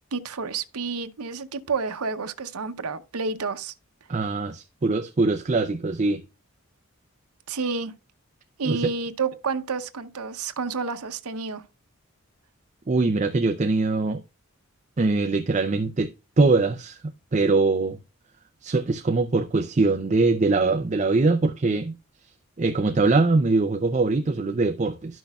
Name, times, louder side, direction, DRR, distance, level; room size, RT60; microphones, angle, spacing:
voice 1, 0.1-3.7 7.5-7.9 8.6-11.6, right 4 dB, 85° right, 0.8 m, -30 dB
voice 2, 4.1-6.2 8.6-8.9 12.9-14.2 15.0-16.1 16.4-18.0 18.6-21.9 22.6-25.2, right 3 dB, 30° right, 0.5 m, -22 dB
11.5 x 6.2 x 2.3 m
head